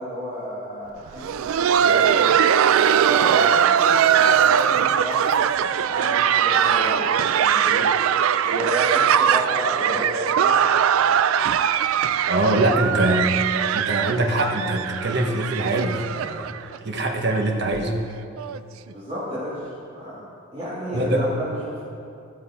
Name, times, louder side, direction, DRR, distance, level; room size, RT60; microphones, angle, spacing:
voice 1, 0.0-5.3 5.9-7.9 8.4-10.6 12.8-13.1 18.9-20.2 20.5-21.8, equal, 25° right, -10 dB, 2.2 m, -32 dB
Laughter, 1.1-16.8 17.0-17.1 17.7-17.8 18.4-18.6 19.7-19.8, right 8 dB, 80° right, 0.3 m, -20 dB
voice 2, 12.2-13.2 13.7-17.9 20.9-21.2, right 2 dB, 55° right, 2 dB, 1.1 m, -23 dB
14.5 x 7.4 x 4.2 m, 2.7 s
head